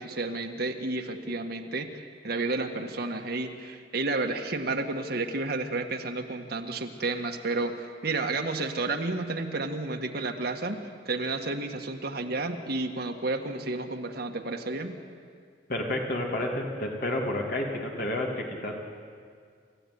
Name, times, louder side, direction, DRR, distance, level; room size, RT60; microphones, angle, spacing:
voice 1, 0.0-14.9, right 3 dB, 60° right, 4 dB, 1.7 m, -31 dB
voice 2, 15.7-18.9, left 1 dB, 55° left, 0 dB, 2.7 m, -30 dB
28.5 x 15.5 x 9.6 m, 2.1 s
head